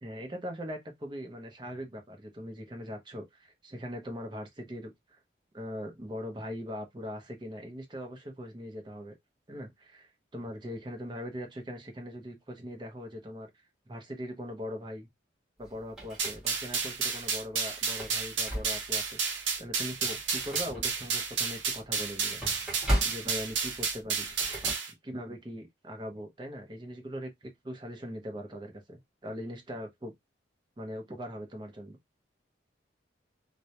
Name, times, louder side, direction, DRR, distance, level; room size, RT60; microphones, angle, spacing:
voice 1, 0.0-5.2 5.5-9.1 9.5-13.5 13.9-15.1 15.6-22.4 23.0-24.3 25.0-30.1 30.8-32.0, equal, 25° right, 0.5 m, -41 dB
sound 1, 15.6-16.9 17.3-17.4 17.9-19.1 19.6-19.7 20.1-24.7, equal, 5° right, 0.9 m, -36 dB
sound 2, 16.2-24.9, right 5 dB, 90° right, 0.6 m, -31 dB
2.2 x 2.0 x 2.7 m
head